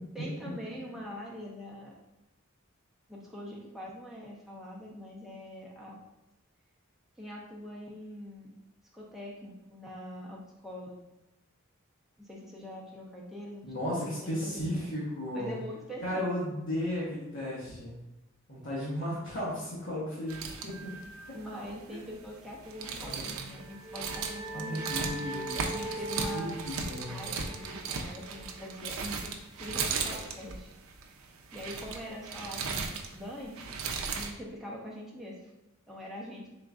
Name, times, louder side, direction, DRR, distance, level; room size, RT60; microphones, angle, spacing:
voice 1, 0.1-1.9 3.1-6.0 7.2-8.5 8.9-11.0 12.2-13.6 14.0-14.9 15.3-16.5 21.3-24.8 25.5-26.6 27.1-30.7 31.5-33.8 34.1-35.5 35.9-36.5, equal, ahead, -5 dB, 0.6 m, -43 dB
voice 2, 13.6-15.6 16.0-18.0 18.5-20.9 21.9-22.0 22.9-23.4 24.5-25.6 26.3-27.2, left 1 dB, 60° left, -7 dB, 1.0 m, -35 dB
sound 1, 20.3-34.3, right 5 dB, 80° right, 0.5 m, -37 dB
sound 2, 23.3-28.7, right 1 dB, 40° right, 1.5 m, -41 dB
3.8 x 3.7 x 2.3 m, 0.96 s
head